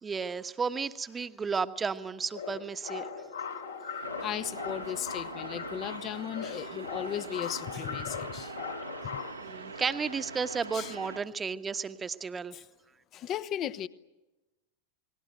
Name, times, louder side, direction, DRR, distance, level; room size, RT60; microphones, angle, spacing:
voice 1, 0.0-3.1 9.4-12.6, right 5 dB, 15° right, 11 dB, 1.2 m, -33 dB
sound 1, 2.3-9.3, left 6 dB, 70° left, 3.2 m, -39 dB
sound 2, 4.0-11.2, right 4 dB, 80° right, 1.5 m, -43 dB
voice 2, 4.2-8.6 9.0-9.2 10.7-10.9 12.5-12.7 13.1-13.9, left 10 dB, 30° left, 14 dB, 1.0 m, -36 dB
29.5 x 21.0 x 7.9 m, 1.0 s
figure-of-eight pair, 90°, 0 cm